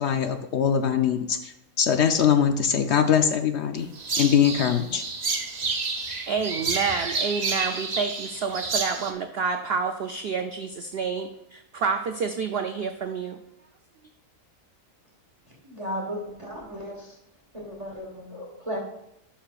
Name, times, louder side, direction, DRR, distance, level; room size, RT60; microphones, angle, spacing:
voice 1, 0.0-1.5 1.8-3.9 4.2-5.0, left 8 dB, 65° left, 7 dB, 0.7 m, -22 dB
sound 1, 4.0-9.1, right 4 dB, 40° right, 0.7 m, -29 dB
voice 2, 6.3-13.4, right 5 dB, 75° right, 6 dB, 0.5 m, -29 dB
voice 3, 15.6-17.2 17.5-18.8, equal, 20° right, -2 dB, 1.4 m, -35 dB
11.0 x 5.7 x 2.4 m, 0.79 s
omnidirectional pair, 1.5 m